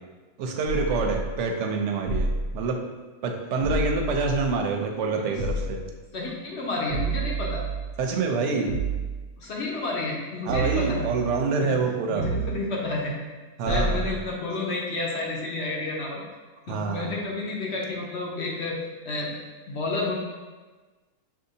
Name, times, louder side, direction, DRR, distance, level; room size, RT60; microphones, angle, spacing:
voice 1, 0.4-2.8 3.2-5.9 8.0-8.8 10.5-12.3 13.6-14.1 16.7-17.1, right 4 dB, 65° right, 3 dB, 0.8 m, -26 dB
sound 1, 0.7-1.4 2.1-2.7 3.6-4.7 5.4-6.0 6.9-8.0 8.7-9.3 10.5-11.6 12.2-12.8 13.7-14.3, right 2 dB, 90° right, 1.1 m, -29 dB
voice 2, 6.1-7.6 9.4-11.1 11.6-11.7 12.1-13.1 13.7-16.2 16.7-18.8 19.0-19.3 19.7-20.1, left 2 dB, 60° left, -3 dB, 0.8 m, -30 dB
5.9 x 2.7 x 2.7 m, 1.3 s
omnidirectional pair, 1.5 m